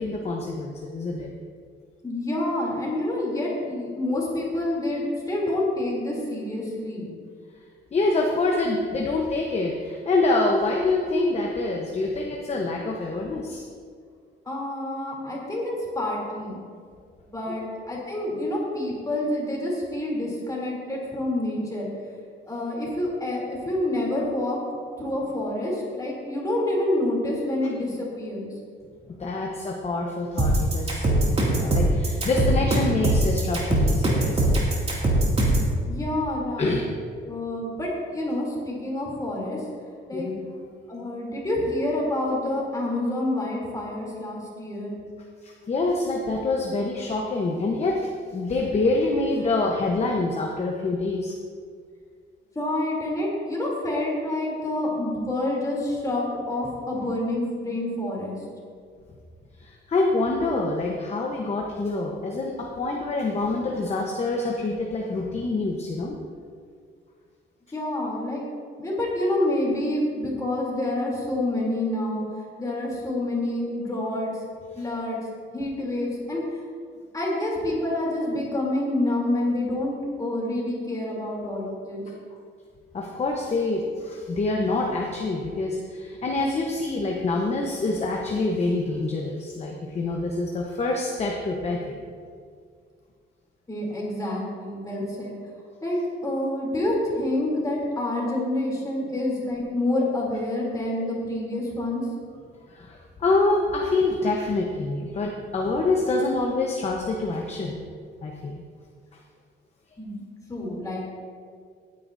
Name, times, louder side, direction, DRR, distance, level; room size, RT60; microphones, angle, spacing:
voice 1, 0.0-1.3 7.9-13.6 17.5-17.6 29.2-34.6 36.6-36.9 40.1-40.4 45.4-51.4 59.6-66.2 82.9-91.8 102.7-107.8 108.2-108.5, left 2 dB, 30° left, 0 dB, 1.0 m, -26 dB
voice 2, 2.0-7.1 14.4-16.6 17.3-21.9 22.5-24.6 25.0-28.5 35.9-36.9 37.2-39.6 40.1-40.3 40.9-45.0 52.5-58.4 67.7-68.4 68.8-72.2 72.6-74.3 74.8-75.2 75.5-76.6 77.1-82.0 93.7-95.3 95.8-96.0 96.2-102.0 110.0-111.0, left 1 dB, 15° left, -4 dB, 3.1 m, -28 dB
sound 1, 30.4-35.7, right 2 dB, 30° right, 2.5 m, -21 dB
17.5 x 9.9 x 2.7 m, 2.1 s
cardioid pair, 150°, 20 cm